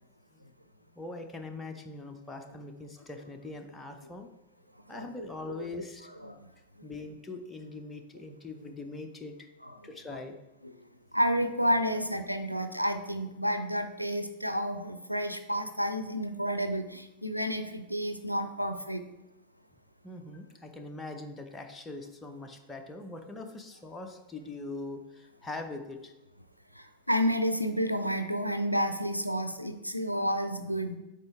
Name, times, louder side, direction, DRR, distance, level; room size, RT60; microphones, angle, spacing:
voice 1, 0.9-4.3 4.9-6.1 6.8-9.5 9.8-10.3 20.0-26.1, left 2 dB, 10° left, 4 dB, 0.8 m, -42 dB
voice 2, 4.9-5.6 6.2-6.4 9.6-10.2 10.6-10.7 11.1-19.0 26.8-31.0, equal, 90° left, 9 dB, 0.4 m, -30 dB
7.9 x 4.6 x 3.6 m, 0.96 s
figure-of-eight pair, 90°, 0 cm